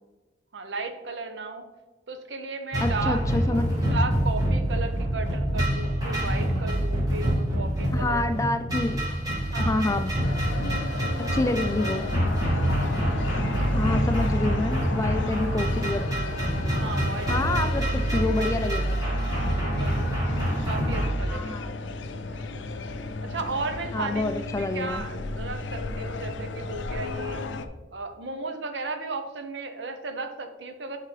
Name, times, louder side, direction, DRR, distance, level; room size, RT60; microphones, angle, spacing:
voice 1, 0.5-1.7 2.1-3.6 3.9-8.2 9.5-10.0 13.5-14.1 16.7-18.5 19.2-20.1 20.7-21.8 22.3-22.4 23.2-27.4 27.9-31.0, right 3 dB, 75° right, 7 dB, 0.8 m, -35 dB
sound 1, 2.7-21.1, right 1 dB, 20° right, 1.9 m, -26 dB
voice 2, 2.8-3.8 7.9-9.0 9.3-10.1 11.2-12.1 13.7-16.1 17.3-19.0 21.3-21.7 23.9-25.0, left 2 dB, 15° left, 9 dB, 0.3 m, -28 dB
sound 2, 10.2-27.7, left 3 dB, 80° left, 0.5 m, -34 dB
10.0 x 3.7 x 3.3 m, 1.2 s
head